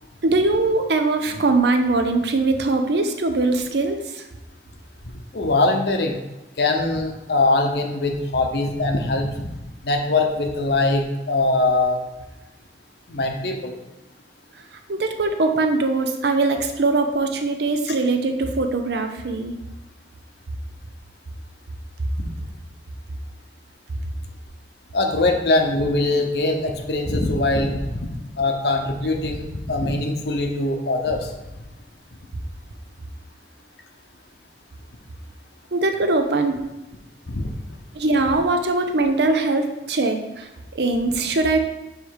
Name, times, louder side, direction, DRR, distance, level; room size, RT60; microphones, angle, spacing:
voice 1, 0.2-4.3 14.9-19.5 35.7-36.6 37.9-41.6, right 3 dB, 70° right, 6 dB, 0.7 m, -21 dB
voice 2, 5.3-6.2 6.6-9.5 9.8-12.0 13.1-13.7 24.9-28.1 28.4-31.3 37.3-37.5, left 2 dB, 70° left, 4 dB, 0.8 m, -22 dB
6.9 x 3.3 x 4.7 m, 1.0 s
head